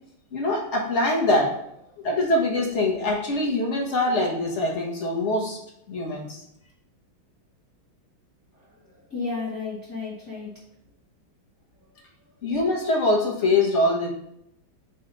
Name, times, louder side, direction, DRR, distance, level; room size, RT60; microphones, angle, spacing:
voice 1, 0.3-1.5 2.0-5.6 5.9-6.4 12.4-14.1, left 2 dB, 40° left, -2 dB, 1.4 m, -23 dB
voice 2, 8.5-10.6 11.7-11.9 12.2-12.3, left 4 dB, 10° left, -10 dB, 1.5 m, -34 dB
5.3 x 3.3 x 5.5 m, 0.78 s
omnidirectional pair, 2.2 m